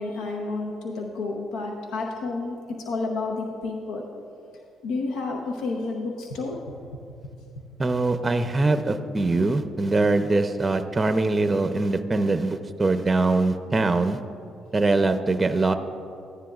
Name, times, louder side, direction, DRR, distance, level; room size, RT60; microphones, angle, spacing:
voice 1, 0.0-4.0 4.8-6.6, left 3 dB, 85° left, 1 dB, 0.9 m, -30 dB
voice 2, 7.8-14.2 14.7-15.8, right 3 dB, 25° right, 9 dB, 0.6 m, -22 dB
15.0 x 9.9 x 2.4 m, 2.5 s
supercardioid pair, 70°, 0 cm